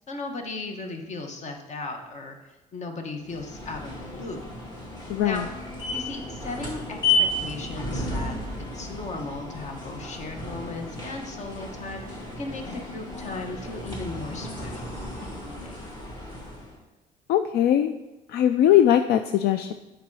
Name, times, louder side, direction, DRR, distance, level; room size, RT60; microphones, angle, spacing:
voice 1, 0.1-4.4 5.2-5.4 5.9-15.8, left 3 dB, 45° left, 4 dB, 1.3 m, -37 dB
sound 1, 3.2-16.8, left 2 dB, 25° left, 2.2 m, -33 dB
voice 2, 5.1-5.4 17.3-17.9 18.3-19.7, left 11 dB, 70° left, 9 dB, 0.4 m, -20 dB
8.3 x 5.1 x 4.8 m, 1.1 s
cardioid pair, 110°, 17 cm